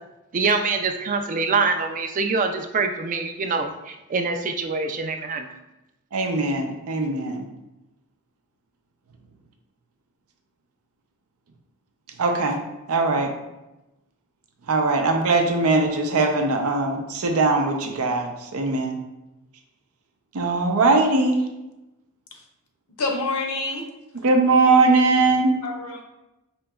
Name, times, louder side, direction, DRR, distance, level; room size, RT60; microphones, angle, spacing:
voice 1, 0.3-5.5, right 4 dB, 35° right, 6 dB, 0.3 m, -24 dB
voice 2, 6.1-7.5 12.2-12.6 12.9-13.3 14.7-19.0 20.3-21.4 24.1-25.6, right 3 dB, 85° right, 3 dB, 0.6 m, -20 dB
voice 3, 23.0-23.9 25.6-26.0, left 3 dB, 85° left, 2 dB, 0.7 m, -27 dB
5.1 x 2.8 x 2.3 m, 0.97 s
head